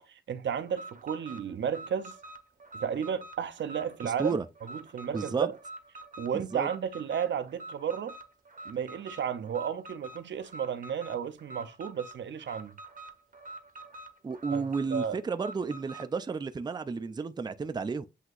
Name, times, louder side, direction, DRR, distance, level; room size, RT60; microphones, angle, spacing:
voice 1, 0.0-2.2 2.8-4.4 4.7-5.5 6.2-8.2 8.7-12.7 14.5-14.6 14.9-15.2, right 8 dB, 80° right, 0.5 m, -33 dB
Alarm, 0.7-16.1, right 2 dB, 45° right, 0.8 m, -46 dB
voice 2, 4.0-4.5 5.1-5.5 6.3-6.7 14.2-18.1, right 4 dB, 25° right, 0.4 m, -32 dB
7.9 x 2.8 x 2.4 m
wide cardioid pair, 110°, 19 cm